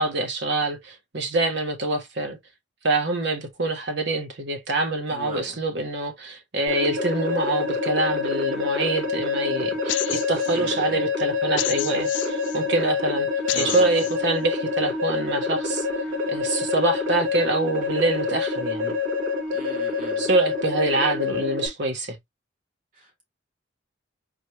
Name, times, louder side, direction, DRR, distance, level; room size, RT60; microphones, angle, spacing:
voice 1, 0.0-2.4 2.8-13.3 13.5-15.9 16.3-18.9 20.2-22.2, right 2 dB, 60° right, 1.2 m, -25 dB
voice 2, 5.1-5.6 10.5-11.0 13.5-14.0 19.5-20.2 22.9-23.3, right 1 dB, 45° right, 1.7 m, -38 dB
sound 1, 6.7-21.7, left 4 dB, 90° right, 2.4 m, -27 dB
sound 2, 9.9-10.6 11.6-12.6 13.5-14.2, left 14 dB, 65° left, 0.4 m, -30 dB
4.2 x 3.2 x 2.9 m
head